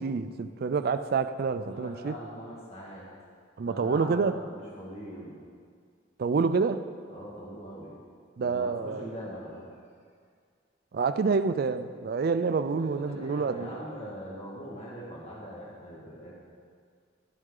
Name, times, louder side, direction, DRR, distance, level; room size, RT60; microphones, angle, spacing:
voice 1, 0.0-2.2 3.6-4.4 6.2-6.8 8.4-9.1 10.9-13.8, right 5 dB, 55° right, 11 dB, 0.4 m, -27 dB
voice 2, 1.5-3.1 3.6-5.3 7.1-7.9 8.4-9.7 12.6-16.3, equal, 35° left, -5 dB, 1.7 m, -42 dB
11.5 x 9.4 x 3.8 m, 2.1 s
head